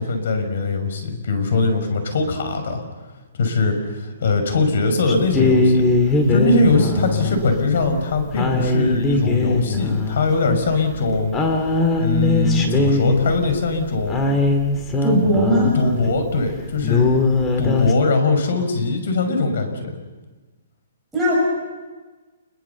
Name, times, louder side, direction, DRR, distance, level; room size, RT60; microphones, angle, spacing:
voice 1, 0.0-2.8 3.3-5.8 6.3-11.3 12.0-14.2 15.7-17.1 17.6-20.0, left 3 dB, 60° left, 7 dB, 5.8 m, -21 dB
sound 1, 5.1-16.1 16.5-16.6 16.8-17.9, left 2 dB, 15° left, 2.1 m, -20 dB
voice 2, 15.0-15.8 21.1-21.3, right 1 dB, 5° right, -7 dB, 7.2 m, -18 dB
29.0 x 22.0 x 7.1 m, 1.3 s
hypercardioid pair, 170°, 0 cm